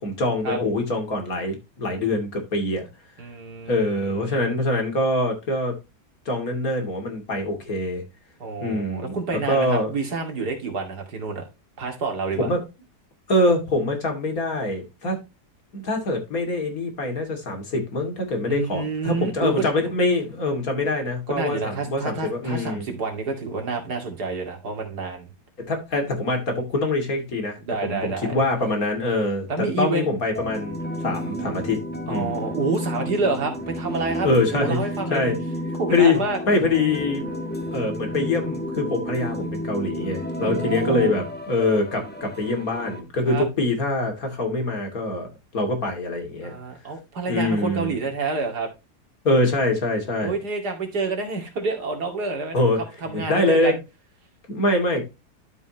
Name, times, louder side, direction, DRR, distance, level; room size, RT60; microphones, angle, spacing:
voice 1, 0.0-2.9 3.7-5.7 6.3-8.0 8.6-9.1 9.5-9.9 12.4-12.6 13.3-15.2 15.7-22.9 25.6-31.8 32.0-32.4 34.2-34.8 35.1-35.4 35.9-36.2 36.5-37.2 37.7-45.3 45.5-46.5 47.3-47.9 49.2-50.4 52.5-52.8 53.1-53.7 54.5-55.0, left 2 dB, 60° left, 2.9 m, -24 dB
voice 2, 3.2-4.4 8.4-11.4 11.8-12.5 18.4-19.5 19.8-19.9 21.3-25.3 27.6-28.4 29.5-30.1 32.1-35.3 35.8-36.4 40.4-41.2 43.3-43.5 46.4-48.7 50.2-53.8, right 3 dB, 70° right, 2.8 m, -28 dB
sound 1, 30.3-43.0, equal, 5° left, 1.2 m, -31 dB
12.5 x 5.5 x 2.9 m
omnidirectional pair, 1.8 m